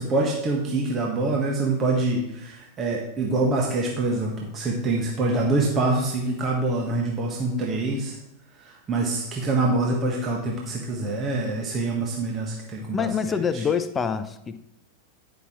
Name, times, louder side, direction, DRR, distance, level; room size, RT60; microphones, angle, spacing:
voice 1, 0.0-8.2 8.6-13.6, right 2 dB, 25° right, -1 dB, 1.4 m, -25 dB
voice 2, 12.9-14.6, left 6 dB, 20° left, 11 dB, 0.6 m, -26 dB
10.0 x 5.8 x 4.4 m, 0.85 s
figure-of-eight pair, 90°, 0 cm